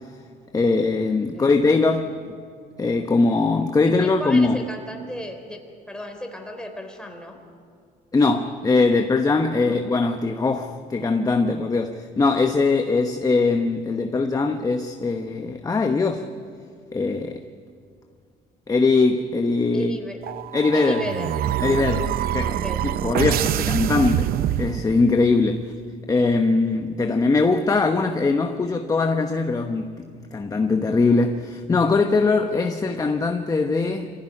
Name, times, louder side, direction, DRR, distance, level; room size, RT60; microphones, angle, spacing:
voice 1, 0.5-2.2 2.8-4.6 8.1-16.3 16.9-17.4 18.7-20.0 20.5-21.0 21.6-22.5 22.8-25.7 26.1-30.1 30.3-34.1, left 3 dB, 20° left, 1.1 m, -21 dB
voice 2, 4.0-5.6 5.9-7.4 9.6-9.8 19.7-20.2 20.7-21.4 22.4-22.9, equal, 5° left, 3.7 m, -33 dB
sound 1, 20.2-25.2, right 12 dB, 60° right, 0.6 m, -25 dB
25.0 x 16.0 x 10.0 m
cardioid pair, 110°, 17 cm